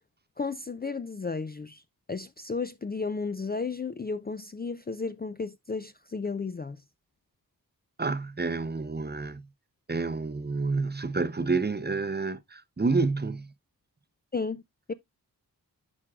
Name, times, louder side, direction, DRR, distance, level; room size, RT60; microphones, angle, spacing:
voice 1, 0.4-1.8 2.1-6.8 14.3-14.6 14.9-15.0, left 4 dB, 25° left, 0.4 m, -33 dB
voice 2, 8.0-9.4 9.9-13.5, right 3 dB, 25° right, 0.7 m, -29 dB
11.0 x 4.5 x 2.3 m
wide cardioid pair, 65°, 37 cm